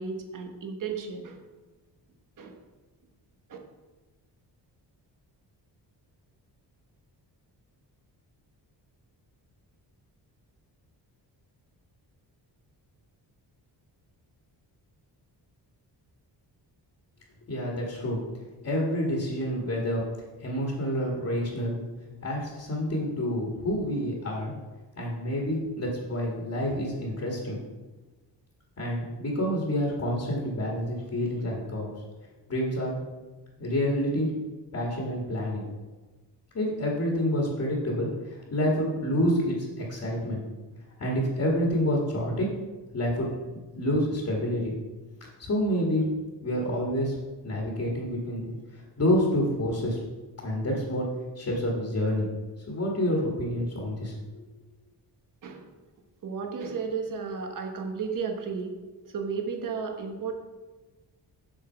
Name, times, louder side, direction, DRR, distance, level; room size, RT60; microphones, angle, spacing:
voice 1, 0.0-1.4 2.4-2.6 3.5-3.6 55.4-55.7 56.2-58.7 59.0-60.3, right 5 dB, 50° right, 4 dB, 1.2 m, -33 dB
voice 2, 17.5-18.2 18.6-20.0 20.4-21.8 22.2-24.5 24.9-27.6 28.8-31.9 32.5-33.0 33.6-34.3 34.7-35.6 36.5-40.4 41.0-42.5 42.9-43.3 43.7-44.7 45.4-46.1 46.4-47.1 47.4-50.0 50.4-52.3 52.7-54.4, equal, 40° left, -2 dB, 1.8 m, -28 dB
7.6 x 6.9 x 4.5 m, 1.2 s
wide cardioid pair, 155°, 42 cm